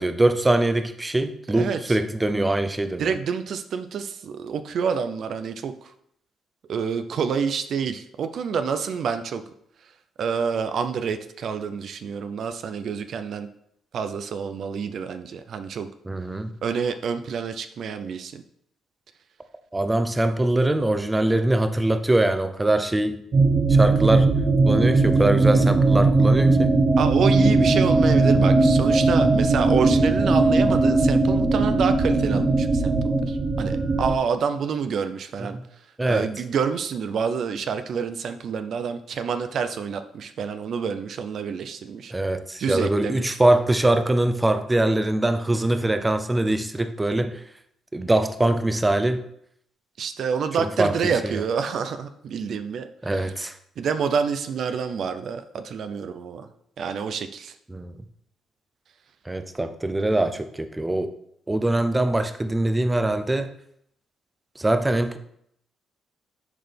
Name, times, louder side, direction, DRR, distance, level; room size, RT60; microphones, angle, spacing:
voice 1, 0.0-3.1 16.1-16.5 19.7-23.2 23.7-24.3 24.6-26.7 35.4-35.6 36.0-36.3 42.1-47.4 47.9-49.2 50.6-50.9 51.2-51.4 53.0-53.6 57.7-58.0 59.3-61.1 61.5-63.5 64.6-65.2, right 1 dB, 15° right, 9 dB, 0.6 m, -23 dB
voice 2, 1.5-2.0 3.0-5.9 6.7-9.4 10.2-13.5 13.9-15.9 16.6-18.4 27.0-35.6 36.1-42.1 42.6-43.4 50.0-52.9 53.1-53.3 53.8-56.5 56.8-57.5, right 6 dB, 65° right, 9 dB, 0.5 m, -28 dB
sound 1, 23.3-34.1, right 3 dB, 45° right, 1.1 m, -19 dB
10.5 x 4.0 x 3.4 m, 0.71 s
cardioid pair, 90°, 0 cm